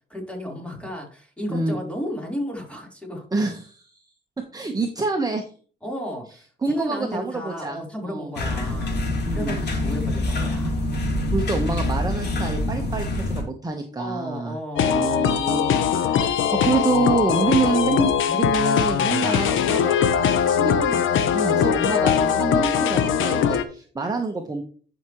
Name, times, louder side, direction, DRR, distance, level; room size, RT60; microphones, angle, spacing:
voice 1, 0.1-3.3 5.8-9.0 9.3-10.7 14.0-15.2 15.5-15.9, equal, 5° left, -1 dB, 4.2 m, -34 dB
voice 2, 3.3-4.0 4.5-5.5 6.6-7.8 8.1-8.3 9.3-9.6 11.3-24.6, right 3 dB, 20° right, 3 dB, 1.3 m, -27 dB
sound 1, 8.3-13.4, left 1 dB, 60° left, 3.4 m, -25 dB
sound 2, 14.8-23.6, left 8 dB, 80° left, 1.0 m, -21 dB
11.5 x 6.0 x 3.2 m, 0.42 s
cardioid pair, 90°, 20 cm